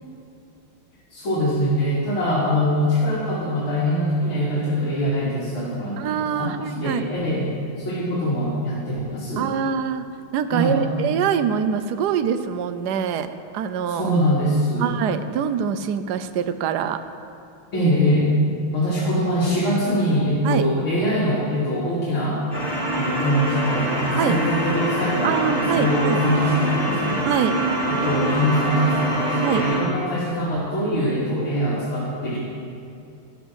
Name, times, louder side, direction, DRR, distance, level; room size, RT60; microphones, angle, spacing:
voice 1, 1.1-6.5 6.8-7.5 7.8-9.5 10.5-10.8 13.9-14.9 17.7-18.3 18.7-22.4 22.9-27.3 27.9-32.4, equal, 70° left, -9 dB, 3.2 m, -23 dB
voice 2, 6.0-7.1 9.4-10.1 10.3-13.3 13.5-14.1 14.8-17.0 20.4-20.7 24.2-24.4 25.2-26.2 27.2-27.6 29.4-29.7, right 8 dB, 70° right, 10 dB, 1.0 m, -24 dB
sound 1, 22.5-29.8, right 1 dB, 25° left, 4.2 m, -24 dB
12.5 x 12.0 x 6.3 m, 2.6 s
omnidirectional pair, 2.4 m